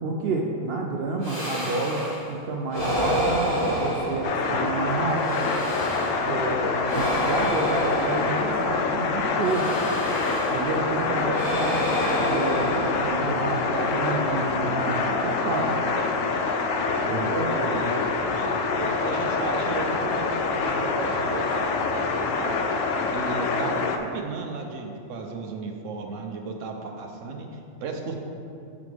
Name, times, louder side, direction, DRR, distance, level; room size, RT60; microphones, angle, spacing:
voice 1, 0.0-5.5 6.3-9.7 10.5-15.8 17.1-17.5, right 3 dB, 60° right, 1 dB, 0.7 m, -29 dB
sound 1, 1.2-2.3 2.7-4.7 5.1-6.3 6.8-8.8 9.4-10.8 11.2-13.4, equal, 55° left, 2.1 m, -29 dB
sound 2, 4.2-24.0, left 4 dB, 85° left, 0.9 m, -26 dB
voice 2, 6.9-7.4 17.1-18.0 18.3-22.6 23.1-28.2, right 3 dB, 75° right, 3 dB, 1.1 m, -35 dB
8.4 x 5.0 x 3.4 m, 2.6 s
omnidirectional pair, 1.3 m